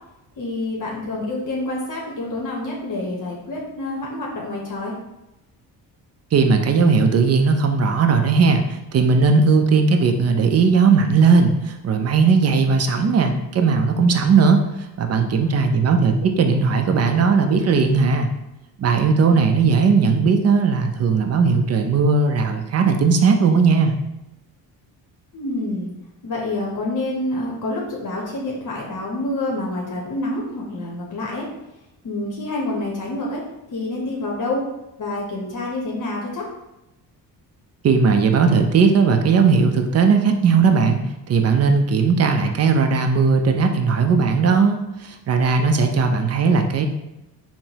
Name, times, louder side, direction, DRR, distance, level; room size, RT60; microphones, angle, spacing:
voice 1, 0.4-4.9 15.1-15.8 25.3-25.9 26.2-31.5 32.0-33.4 33.7-34.6 35.0-36.5, left 2 dB, 45° left, -3 dB, 0.9 m, -27 dB
voice 2, 6.3-14.6 15.0-18.3 18.8-24.0 37.8-41.0 41.3-46.9, right 5 dB, 35° right, 6 dB, 0.5 m, -17 dB
3.7 x 2.1 x 2.9 m, 0.94 s
supercardioid pair, 60°, 44 cm